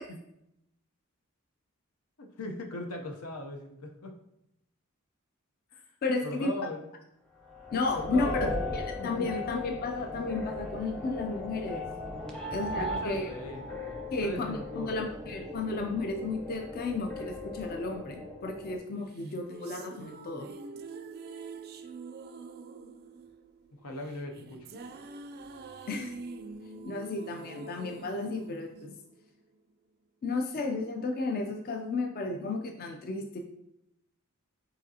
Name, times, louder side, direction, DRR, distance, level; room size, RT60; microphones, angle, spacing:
voice 1, 2.2-4.2 5.7-5.9 6.2-6.9 7.9-8.7 9.0-9.6 12.4-15.4 23.8-24.7, left 2 dB, 85° left, 3 dB, 0.7 m, -39 dB
voice 2, 6.0-6.5 7.7-8.3 8.7-11.8 12.5-13.3 14.1-20.5 25.9-26.2 26.8-28.9 30.2-33.4, left 3 dB, 45° left, 3 dB, 0.4 m, -33 dB
sound 1, 7.4-18.8, left 2 dB, 5° left, 0.7 m, -38 dB
sound 2, 19.1-29.5, right 3 dB, 45° right, 0.3 m, -45 dB
4.9 x 3.9 x 2.7 m, 0.83 s
head